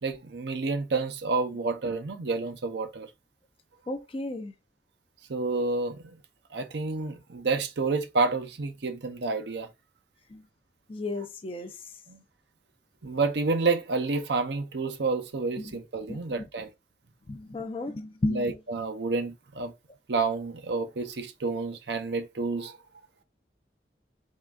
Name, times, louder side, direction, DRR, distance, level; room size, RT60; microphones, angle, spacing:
voice 1, 0.0-3.1 5.3-6.2 6.5-9.7 12.1-12.2 13.0-16.7 18.3-19.7 20.1-22.8, right 3 dB, 70° right, 0.6 m, -29 dB
voice 2, 3.9-4.5 10.3-10.4 10.9-11.7 15.6-15.7 16.1-16.2 17.3-18.6, left 2 dB, 30° left, 0.5 m, -33 dB
3.7 x 3.4 x 2.3 m
head